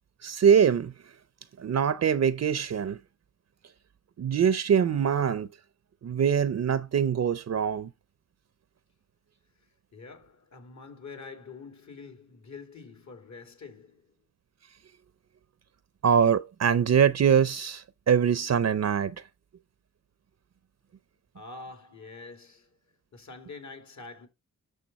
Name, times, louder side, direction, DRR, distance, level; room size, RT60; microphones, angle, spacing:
voice 1, 0.2-0.9 1.6-3.0 4.2-5.5 6.0-7.9 16.0-19.1, right 7 dB, 55° right, 0.6 m, -23 dB
voice 2, 9.9-14.1 21.3-22.8 23.1-24.3, left 4 dB, 65° left, 2.8 m, -46 dB
9.1 x 6.5 x 4.1 m
wide cardioid pair, 90°, 31 cm